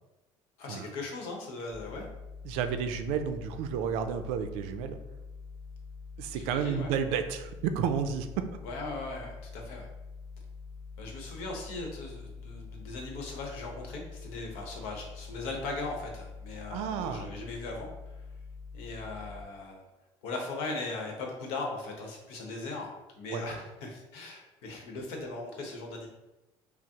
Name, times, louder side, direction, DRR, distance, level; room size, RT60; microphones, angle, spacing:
voice 1, 0.6-2.1 6.3-6.9 8.6-9.9 11.0-17.9 18.7-19.8 20.2-22.9 23.2-26.1, left 3 dB, 85° left, 1 dB, 0.9 m, -39 dB
sound 1, 1.7-19.4, left 4 dB, 45° left, 1.0 m, -45 dB
voice 2, 2.4-5.0 6.2-8.4 16.7-17.3 23.3-23.4, right 7 dB, 90° right, 8 dB, 0.4 m, -31 dB
5.9 x 2.0 x 2.9 m, 1.0 s
cardioid pair, 165°, 10 cm